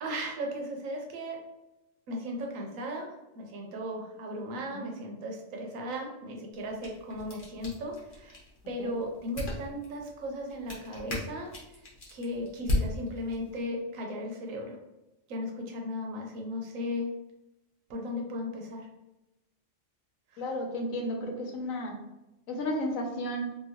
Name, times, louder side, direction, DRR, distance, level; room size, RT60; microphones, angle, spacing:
voice 1, 0.0-1.4 2.1-3.1 3.3-8.4 8.7-11.5 12.1-14.8 15.3-17.1 17.9-18.8 20.3-20.5, left 1 dB, 75° right, 1 dB, 1.0 m, -36 dB
sound 1, 6.5-13.6, left 2 dB, 45° left, 0.9 m, -37 dB
voice 2, 20.4-21.9 22.5-23.5, left 1 dB, 85° left, 2 dB, 1.1 m, -33 dB
2.8 x 2.6 x 2.8 m, 0.97 s
omnidirectional pair, 1.4 m